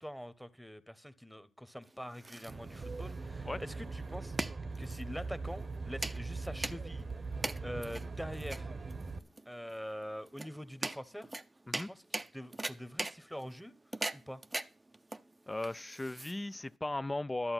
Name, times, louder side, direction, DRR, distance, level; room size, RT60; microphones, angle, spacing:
voice 1, 0.0-4.4 4.8-7.1 7.6-8.7 9.5-11.3 11.7-13.7 14.1-14.4, equal, ahead, 1.1 m, -44 dB
sound 1, 1.8-16.7, right 2 dB, 25° right, 0.6 m, -42 dB
Aircraft, 2.5-9.2, right 3 dB, 50° right, 0.9 m, -41 dB
voice 2, 15.5-17.5, left 2 dB, 20° left, 0.5 m, -37 dB
11.5 x 7.8 x 5.8 m
supercardioid pair, 45°, 0 cm